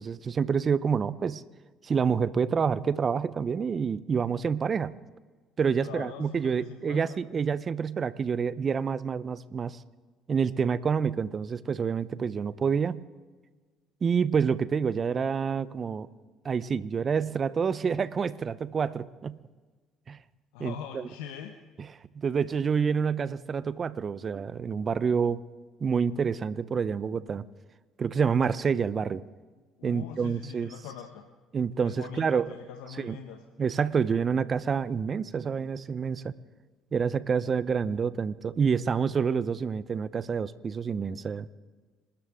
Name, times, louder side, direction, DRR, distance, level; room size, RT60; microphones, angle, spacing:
voice 1, 0.0-1.4 1.8-4.9 5.6-9.8 10.3-13.0 14.0-16.1 16.4-19.4 20.1-20.2 20.6-21.1 22.1-25.4 25.8-27.4 28.0-29.2 29.8-30.7 31.5-32.5 33.0-33.2 33.6-36.3 36.9-41.5, right 6 dB, 40° right, 16 dB, 0.9 m, -28 dB
voice 2, 5.8-7.2 20.5-21.5 29.8-31.2 31.8-33.4, left 8 dB, 85° left, 4 dB, 1.3 m, -42 dB
27.0 x 13.0 x 3.8 m, 1.4 s
hypercardioid pair, 65°, 0 cm